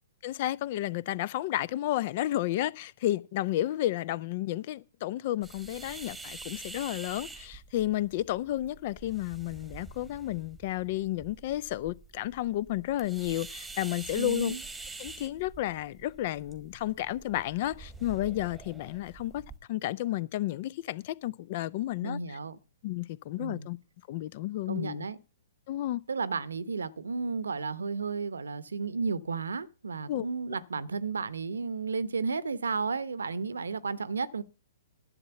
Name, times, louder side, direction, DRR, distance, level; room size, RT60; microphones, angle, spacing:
voice 1, 0.2-14.5 15.0-19.4 19.7-22.4 22.8-23.8 24.1-25.1 25.7-26.0 30.1-30.3, left 14 dB, 45° left, 0.6 m, -32 dB
sound 1, 5.4-19.6, right 3 dB, 5° right, 1.3 m, -46 dB
voice 2, 14.1-14.6 22.0-22.6 23.4-23.7 24.7-25.2 26.1-34.4, right 4 dB, 80° right, 0.8 m, -33 dB
11.0 x 7.4 x 7.0 m
hypercardioid pair, 120°, 0 cm